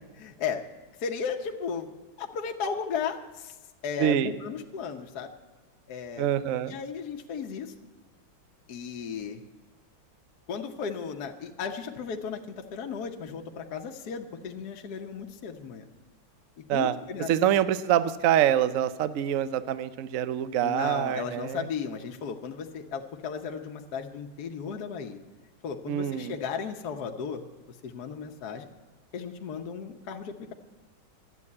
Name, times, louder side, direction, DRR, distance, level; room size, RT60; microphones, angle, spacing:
voice 1, 0.2-0.6 1.0-1.9 2.2-3.5 3.8-5.3 5.9-6.3 6.7-7.7 8.7-9.4 10.5-15.8 16.7-17.3 20.6-25.2 25.6-27.4 27.8-28.7 29.1-30.5, left 6 dB, 60° left, 3 dB, 1.3 m, -35 dB
voice 2, 4.0-4.3 6.2-6.7 16.7-16.9 17.3-21.7 25.9-26.4, right 10 dB, 80° right, 13 dB, 0.7 m, -25 dB
12.5 x 8.3 x 9.6 m, 1.2 s
omnidirectional pair, 2.2 m